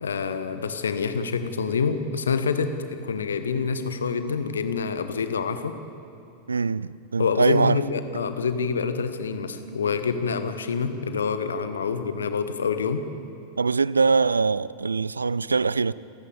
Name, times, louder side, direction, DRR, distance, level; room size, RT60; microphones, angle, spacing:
voice 1, 0.0-5.7 7.2-13.0, left 5 dB, 70° left, 1.5 m, -27 dB
voice 2, 6.5-7.8 13.6-15.9, right 4 dB, 75° right, 0.4 m, -22 dB
28.5 x 15.5 x 7.3 m
figure-of-eight pair, 90°, 0 cm